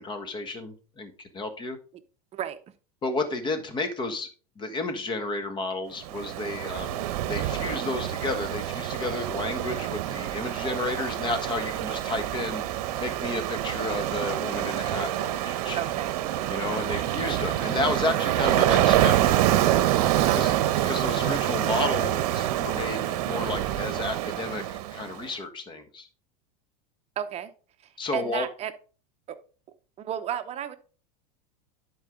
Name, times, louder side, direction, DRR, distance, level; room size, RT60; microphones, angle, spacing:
voice 1, 0.0-1.8 3.0-4.3 4.6-12.6 13.0-15.8 16.5-19.4 20.3-20.5 20.8-24.6 24.9-26.1 28.0-28.5, left 2 dB, 25° left, 7 dB, 1.4 m, -32 dB
Ocean, 6.0-25.2, right 13 dB, 65° right, 0.9 m, -26 dB
sound 1, 12.1-23.2, right 3 dB, ahead, 2.3 m, -49 dB
voice 2, 15.7-16.1 16.7-17.0 20.3-20.6 27.2-27.5 27.8-28.7 29.3-29.4 30.0-30.8, right 10 dB, 30° right, 9 dB, 0.8 m, -33 dB
11.0 x 4.7 x 3.7 m, 0.37 s
supercardioid pair, 125°, 20 cm